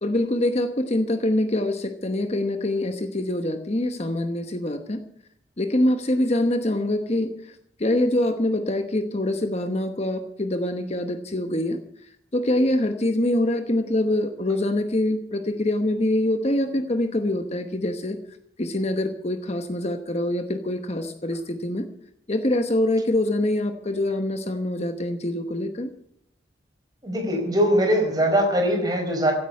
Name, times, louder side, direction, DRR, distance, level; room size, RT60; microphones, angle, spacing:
voice 1, 0.0-5.0 5.6-11.8 12.3-18.2 18.6-21.9 22.3-25.9, left 1 dB, 35° left, 8 dB, 1.0 m, -24 dB
voice 2, 27.0-29.3, equal, 20° right, 2 dB, 4.6 m, -21 dB
16.0 x 8.8 x 9.4 m, 0.73 s
head